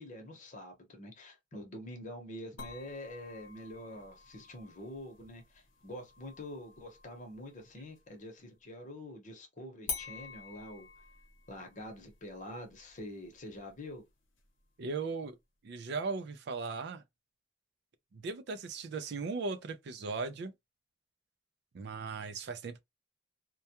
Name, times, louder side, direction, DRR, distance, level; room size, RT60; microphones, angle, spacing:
voice 1, 0.0-10.9 11.5-14.0, left 1 dB, 40° left, 0.9 m, -46 dB
sound 1, 2.6-8.2 9.9-14.9, left 6 dB, 85° left, 0.8 m, -48 dB
voice 2, 14.8-15.4 15.6-17.0 18.1-20.5 21.7-22.8, right 4 dB, 60° right, 0.4 m, -37 dB
2.2 x 2.1 x 2.8 m
head